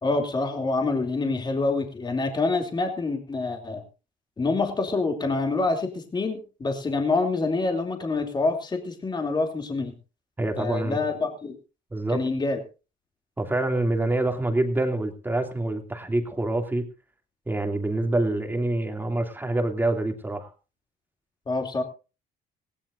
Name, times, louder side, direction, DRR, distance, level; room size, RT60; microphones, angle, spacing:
voice 1, 0.0-3.8 4.4-10.0 10.6-11.6 12.1-12.6 21.5-21.8, left 3 dB, 25° left, 4 dB, 3.0 m, -26 dB
voice 2, 10.4-11.0 11.9-12.3 13.4-16.9 17.5-20.5, right 2 dB, 10° right, 4 dB, 2.7 m, -26 dB
18.5 x 17.5 x 2.7 m, 0.32 s
cardioid pair, 110°, 17 cm